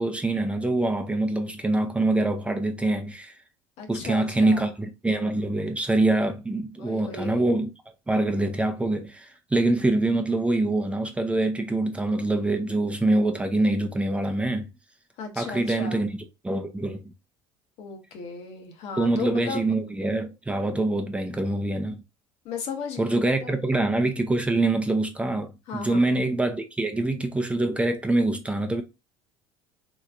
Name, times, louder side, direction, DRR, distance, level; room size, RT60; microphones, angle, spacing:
voice 1, 0.0-3.3 3.9-7.7 8.1-14.7 15.4-16.1 16.4-17.1 19.0-22.0 23.0-28.8, right 2 dB, 10° right, 0.6 m, -25 dB
voice 2, 3.8-4.7 6.8-7.6 15.2-16.0 17.8-19.6 22.4-23.7 25.7-26.1, left 5 dB, 65° left, 1.0 m, -36 dB
3.2 x 2.9 x 2.4 m
supercardioid pair, 95°, 11 cm